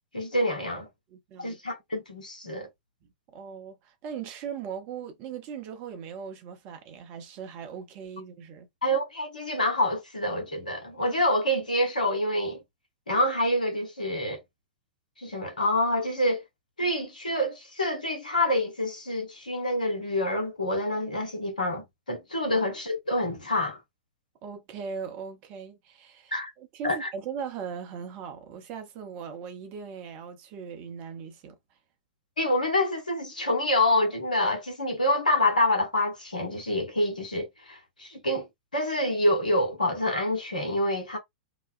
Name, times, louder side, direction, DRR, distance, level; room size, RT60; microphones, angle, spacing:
voice 1, 0.1-0.9 1.4-2.7 8.8-12.6 13.1-14.4 15.2-16.4 16.8-23.8 26.3-26.5 26.8-27.1 32.4-38.5 38.7-41.2, left 1 dB, 80° left, 1.2 m, -27 dB
voice 2, 1.1-1.6 3.3-8.7 24.4-31.6, right 6 dB, 40° right, 0.9 m, -39 dB
2.9 x 2.2 x 2.4 m
figure-of-eight pair, 100°, 4 cm